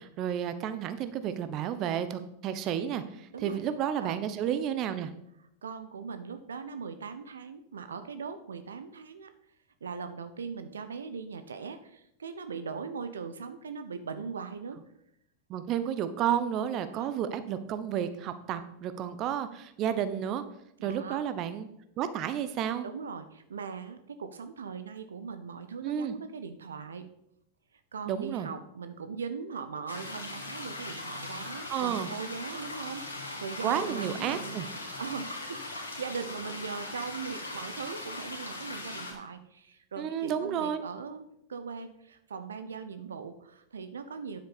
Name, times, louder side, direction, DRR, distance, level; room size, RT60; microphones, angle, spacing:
voice 1, 0.0-3.0 3.4-5.1 15.5-20.4 20.8-21.7 22.0-22.9 25.8-26.1 28.1-28.5 31.7-32.1 33.6-34.6 40.0-40.8, right 9 dB, 40° right, 11 dB, 0.9 m, -31 dB
voice 2, 3.3-3.6 4.0-4.2 5.4-9.3 9.8-14.8 16.9-17.1 20.8-21.2 22.8-27.1 27.9-34.6 35.0-44.4, right 5 dB, 75° right, 10 dB, 0.8 m, -40 dB
sound 1, 29.9-39.1, left 2 dB, 85° left, 2.2 m, -40 dB
9.8 x 7.9 x 4.1 m, 0.77 s
figure-of-eight pair, 90°, 0 cm